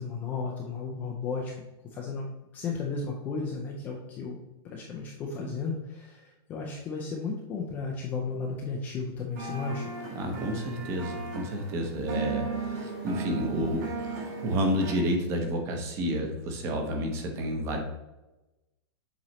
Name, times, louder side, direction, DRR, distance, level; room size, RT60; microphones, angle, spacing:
voice 1, 0.0-1.5 1.9-2.3 2.5-4.4 4.6-9.9, left 4 dB, 10° left, -1 dB, 0.4 m, -34 dB
sound 1, 9.4-15.0, right 4 dB, 40° right, 1.4 m, -36 dB
voice 2, 10.1-17.8, equal, 20° right, 3 dB, 0.8 m, -30 dB
7.5 x 3.1 x 4.1 m, 1.0 s
supercardioid pair, 180°, 14 cm